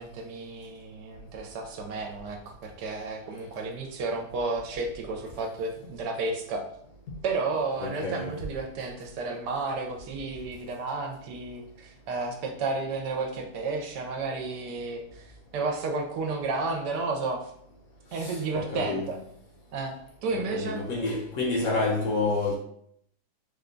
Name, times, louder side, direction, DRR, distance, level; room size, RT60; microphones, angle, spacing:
voice 1, 0.0-6.6 7.2-17.4 18.1-19.2 19.7-20.0 20.2-20.8, right 3 dB, 75° right, 1.2 m, -32 dB
voice 2, 7.8-8.3 18.2-19.1 20.3-22.6, left 3 dB, 60° left, 1.0 m, -29 dB
3.5 x 2.2 x 3.7 m
omnidirectional pair, 1.9 m